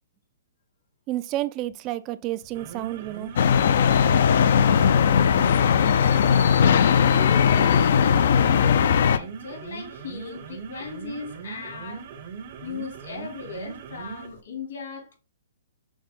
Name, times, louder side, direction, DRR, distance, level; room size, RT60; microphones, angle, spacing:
voice 1, 1.1-3.3, right 15 dB, 25° right, 0.3 m, -30 dB
sound 1, 2.4-14.4, right 6 dB, 45° right, 0.8 m, -40 dB
sound 2, 3.4-9.2, left 7 dB, 60° left, 0.4 m, -19 dB
voice 2, 5.0-6.6 7.1-12.1 12.6-15.2, left 5 dB, 75° left, 2.5 m, -37 dB
6.2 x 2.1 x 3.6 m
hypercardioid pair, 150°, 0 cm